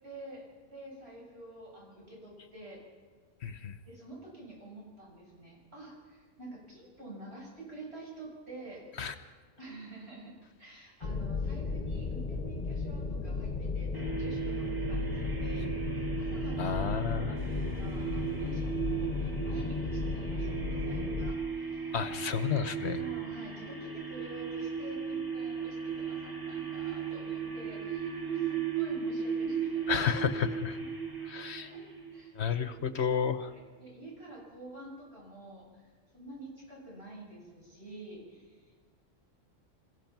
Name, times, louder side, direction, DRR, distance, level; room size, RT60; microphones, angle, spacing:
voice 1, 0.0-2.8 3.9-8.8 9.6-15.7 15.9-22.0 22.9-30.1 30.8-30.9 31.2-31.3 31.6-31.8 32.1-32.7 33.4-38.9, right 2 dB, 55° right, -3 dB, 7.9 m, -48 dB
voice 2, 3.4-3.8 9.0-9.1 16.6-17.3 21.9-23.0 29.9-30.8 31.3-31.7 32.4-33.5, left 7 dB, 65° left, 10 dB, 1.1 m, -31 dB
sound 1, 11.0-21.3, left 4 dB, 40° left, 1.2 m, -35 dB
sound 2, 13.9-32.2, right 5 dB, 15° right, 2.2 m, -38 dB
sound 3, 17.4-33.7, right 12 dB, 75° right, 1.7 m, -40 dB
27.5 x 16.0 x 6.0 m, 1.5 s
omnidirectional pair, 1.3 m